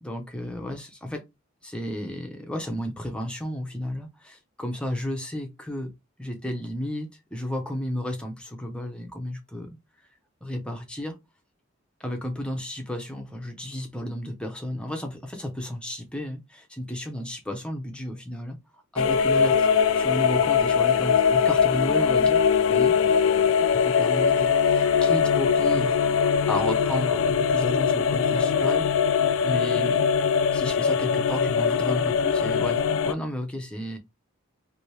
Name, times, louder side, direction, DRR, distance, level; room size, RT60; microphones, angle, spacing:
voice 1, 0.0-1.2 1.6-5.9 6.2-9.8 10.4-11.2 12.0-18.6 18.9-19.7 19.9-23.2 23.7-26.0 26.5-28.9 29.4-30.0 30.5-34.0, left 1 dB, 5° left, 0.5 m, -33 dB
sound 1, 19.0-33.1, left 6 dB, 65° left, 0.3 m, -22 dB
2.9 x 2.6 x 3.1 m
head